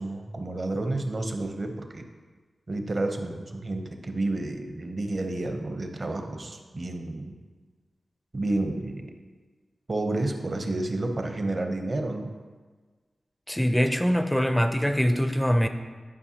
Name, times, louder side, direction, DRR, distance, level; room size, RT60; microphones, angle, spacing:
voice 1, 0.0-2.0 2.7-7.3 8.3-9.1 9.9-12.3, right 2 dB, 40° right, 5 dB, 0.7 m, -30 dB
voice 2, 13.5-15.7, equal, 5° left, 7 dB, 0.4 m, -23 dB
9.8 x 5.3 x 2.8 m, 1.4 s
wide cardioid pair, 90°, 0 cm